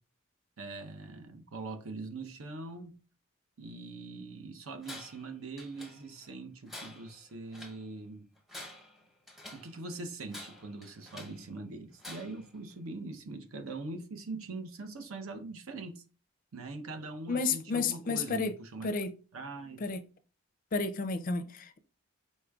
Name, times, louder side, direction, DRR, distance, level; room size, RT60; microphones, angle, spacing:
voice 1, 0.6-2.9 3.6-8.3 9.5-16.0 16.5-18.9 19.3-19.8, right 3 dB, 70° right, 0.7 m, -42 dB
Tools, 4.8-5.3 5.6-6.3 6.7-7.8 8.4-9.7 10.3-11.4 12.0-12.5, left 1 dB, ahead, 0.7 m, -48 dB
voice 2, 17.3-18.5 18.8-19.1 19.8-20.0 20.7-21.8, left 4 dB, 40° left, 0.4 m, -31 dB
4.9 x 4.2 x 2.3 m
head